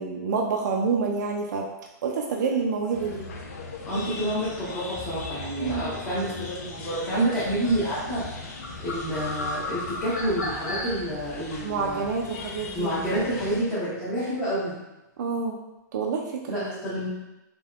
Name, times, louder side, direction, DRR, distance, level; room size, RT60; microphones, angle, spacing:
voice 1, 0.0-1.7 2.0-3.2 5.6-5.9 11.6-12.9 15.2-15.6 15.9-16.7, right 5 dB, 65° right, 1 dB, 0.4 m, -27 dB
sound 1, 2.9-13.6, left 3 dB, 45° left, 0.4 m, -39 dB
sound 2, 3.9-10.9, left 2 dB, 65° left, 1.1 m, -37 dB
voice 2, 3.9-8.5 8.8-12.0 12.7-14.8 16.5-17.1, right 1 dB, 10° left, -13 dB, 0.6 m, -28 dB
3.3 x 2.2 x 2.4 m, 0.96 s
hypercardioid pair, 170°, 10 cm